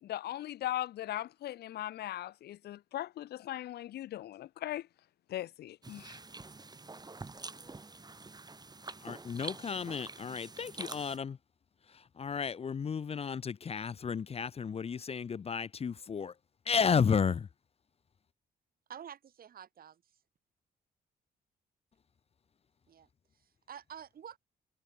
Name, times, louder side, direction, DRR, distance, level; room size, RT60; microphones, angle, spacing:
voice 1, 0.0-4.9 5.3-6.2, left 13 dB, 80° left, 1.0 m, -39 dB
sound 1, 5.8-11.2, right 3 dB, 25° right, 4.1 m, -46 dB
voice 2, 9.0-11.4 12.2-16.3 16.7-17.5, left 6 dB, 35° left, 0.7 m, -32 dB
voice 3, 18.9-20.0 22.9-23.1 23.3-24.4, right 9 dB, 60° right, 4.4 m, -49 dB
cardioid pair, 80°, 17 cm